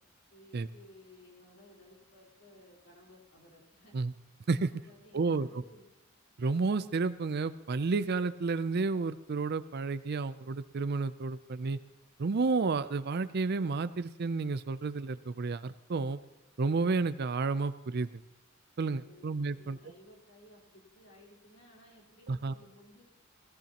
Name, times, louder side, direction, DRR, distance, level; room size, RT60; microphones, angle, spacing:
voice 1, 0.3-4.0 4.7-5.9 18.9-23.0, left 1 dB, 75° left, -2 dB, 4.0 m, -58 dB
voice 2, 5.1-5.6 6.4-11.8 12.2-16.2 16.6-18.1 18.8-19.8 22.3-22.5, right 4 dB, 50° right, 14 dB, 0.5 m, -31 dB
17.0 x 16.5 x 2.9 m, 0.96 s
head